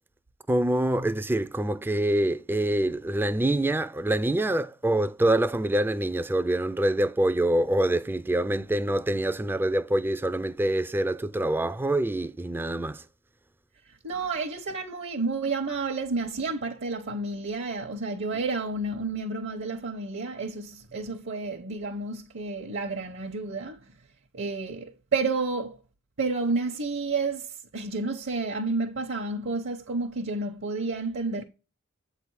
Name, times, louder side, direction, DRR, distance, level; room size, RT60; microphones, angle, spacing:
voice 1, 0.5-13.0, right 1 dB, 10° right, 0.3 m, -25 dB
voice 2, 14.0-23.9 24.3-25.8 26.2-31.4, right 3 dB, 60° right, 0.9 m, -30 dB
8.0 x 3.3 x 4.7 m
head